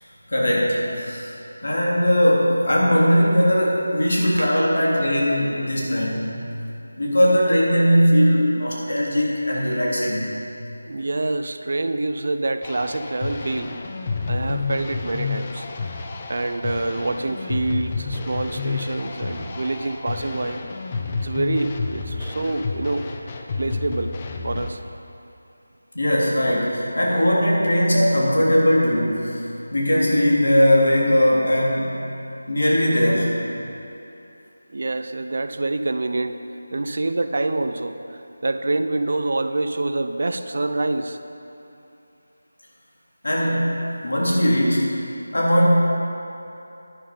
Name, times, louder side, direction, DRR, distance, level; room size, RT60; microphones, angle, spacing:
voice 1, 0.3-6.4 7.0-10.3 25.9-29.4 29.7-32.0 32.5-33.3 43.2-44.9 45.3-45.7, equal, 75° left, -4 dB, 3.1 m, -19 dB
voice 2, 10.9-13.8 14.3-15.7 16.3-20.6 21.2-23.1 23.6-24.2 24.4-24.8 34.7-36.4 36.7-41.2 44.3-44.4, right 2 dB, 55° right, 9 dB, 0.6 m, -26 dB
sound 1, 12.6-24.7, left 4 dB, 25° left, 0.6 m, -30 dB
10.5 x 10.0 x 5.1 m, 2.8 s
figure-of-eight pair, 170°, 0 cm